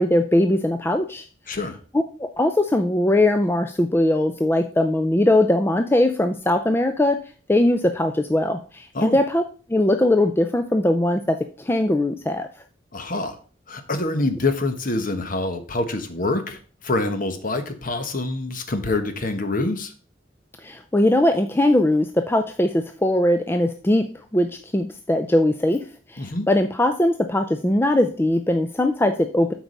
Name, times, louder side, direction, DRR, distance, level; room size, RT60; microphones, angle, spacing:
voice 1, 0.0-1.6 1.9-7.2 7.5-9.4 9.7-12.5 20.6-24.1 24.3-29.5, left 1 dB, 10° left, 6 dB, 0.4 m, -20 dB
voice 2, 12.9-13.3 13.7-19.9 26.2-26.5, left 2 dB, 45° left, 8 dB, 1.0 m, -26 dB
7.9 x 4.7 x 5.3 m, 0.40 s
head